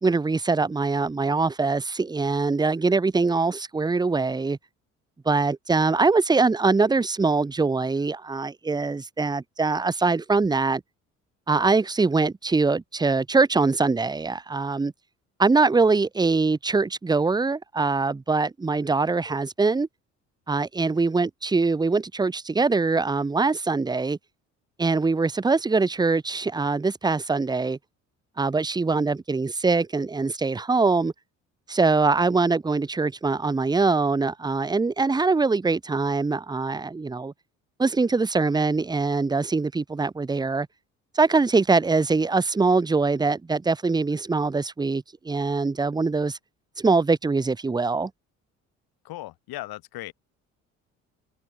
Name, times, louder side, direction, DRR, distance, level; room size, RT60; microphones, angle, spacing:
voice 1, 0.0-4.6 5.3-10.8 11.5-14.9 15.4-19.9 20.5-24.2 24.8-27.8 28.4-31.1 31.7-37.3 37.8-40.7 41.1-46.4 46.8-48.1, right 4 dB, 10° right, 0.6 m, -23 dB
voice 2, 49.0-50.1, left 17 dB, 65° left, 2.4 m, -37 dB
hypercardioid pair, 55°, 40 cm